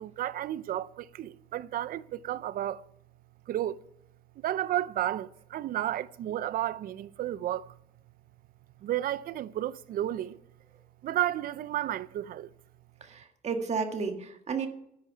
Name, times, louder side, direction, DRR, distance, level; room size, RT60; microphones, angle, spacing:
voice 1, 0.0-2.8 3.5-3.8 4.4-7.7 8.8-10.4 11.0-12.5, right 12 dB, 60° right, 0.6 m, -32 dB
voice 2, 13.0-14.7, right 5 dB, 40° right, 1.7 m, -32 dB
13.5 x 9.6 x 5.8 m
cardioid pair, 110°, 17 cm